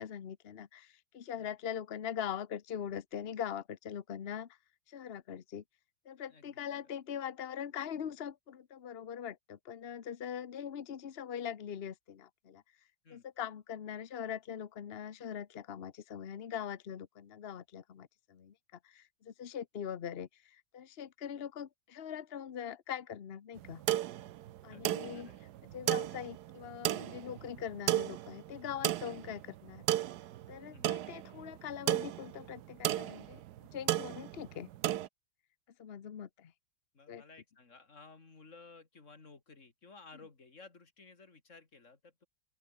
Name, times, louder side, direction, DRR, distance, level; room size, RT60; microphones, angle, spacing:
voice 1, 0.0-4.6 4.9-5.6 6.0-12.6 13.1-18.5 18.8-23.8 24.6-25.3 25.7-29.8 30.5-33.4 33.7-34.7 35.8-36.5 37.1-37.2, left 9 dB, 65° left, 0.6 m, -42 dB
voice 2, 6.3-6.9 13.0-13.2 24.7-25.5 30.7-31.0 36.9-42.3, left 4 dB, 35° left, 2.9 m, -56 dB
sound 1, 23.6-35.1, right 13 dB, 70° right, 1.0 m, -35 dB
open air
omnidirectional pair, 2.4 m